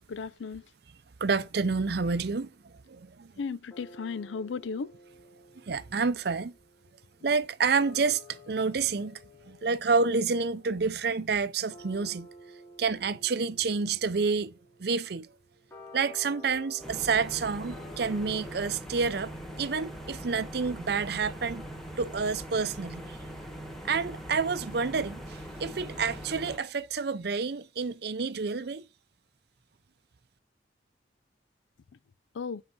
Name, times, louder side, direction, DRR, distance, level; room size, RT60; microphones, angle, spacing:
voice 1, 0.1-0.6 3.4-4.9 32.4-32.6, left 5 dB, 80° left, 0.4 m, -35 dB
voice 2, 1.2-3.6 5.7-6.5 7.2-9.2 9.5-12.3 12.8-14.5 14.8-15.3 15.9-19.3 19.6-21.6 22.0-23.2 23.8-28.8, right 4 dB, 55° right, 0.6 m, -29 dB
sound 1, 1.6-2.9 3.7-18.6, left 1 dB, 20° left, 4.9 m, -52 dB
sound 2, 16.8-26.6, right 1 dB, ahead, 1.7 m, -41 dB
7.9 x 4.7 x 5.5 m
head